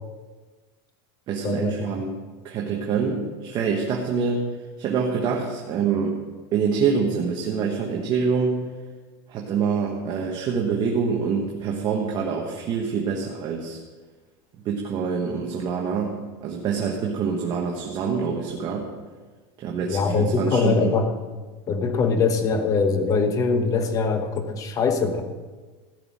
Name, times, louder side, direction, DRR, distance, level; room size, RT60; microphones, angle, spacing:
voice 1, 1.3-2.1 2.4-4.5 4.8-6.2 6.5-8.7 9.3-13.8 14.6-18.9 19.6-21.0, right 5 dB, 30° right, 0 dB, 1.3 m, -26 dB
voice 2, 19.9-21.1 21.7-25.2, left 4 dB, 25° left, 8 dB, 1.0 m, -22 dB
15.0 x 6.1 x 7.4 m, 1.3 s
supercardioid pair, 160°, 14 cm